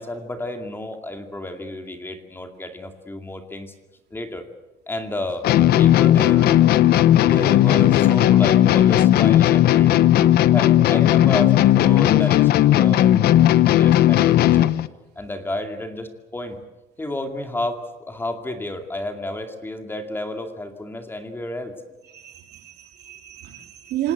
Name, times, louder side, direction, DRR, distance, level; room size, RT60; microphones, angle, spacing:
voice 1, 0.0-3.7 4.1-4.4 4.9-5.5 5.8-6.6 7.1-10.1 10.5-13.1 13.6-14.7 15.2-16.6 17.0-21.8, left 1 dB, 15° left, 2.3 m, -31 dB
sound 1, 5.4-14.9, left 12 dB, 70° left, 0.9 m, -15 dB
voice 2, 22.1-24.1, right 12 dB, 75° right, 3.5 m, -31 dB
27.0 x 19.0 x 8.1 m
cardioid pair, 145°, 17 cm